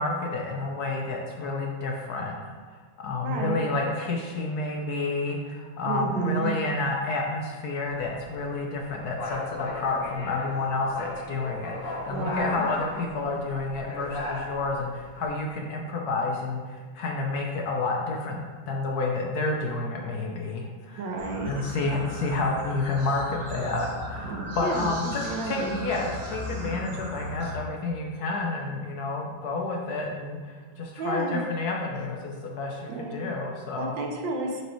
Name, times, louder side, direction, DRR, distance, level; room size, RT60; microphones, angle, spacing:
voice 1, 0.0-21.1 21.4-34.0, left 3 dB, 65° left, 0 dB, 1.1 m, -30 dB
voice 2, 3.2-3.6 5.8-6.5 12.1-12.6 21.0-21.5 24.6-25.8 31.0-31.4 32.9-33.2 33.7-34.6, right 4 dB, 75° right, 2 dB, 1.5 m, -31 dB
sound 1, 7.8-15.3, left 2 dB, 45° left, 0.7 m, -37 dB
sound 2, 21.2-27.6, equal, 50° right, 1.5 m, -37 dB
8.0 x 4.6 x 3.0 m, 1.5 s
omnidirectional pair, 2.1 m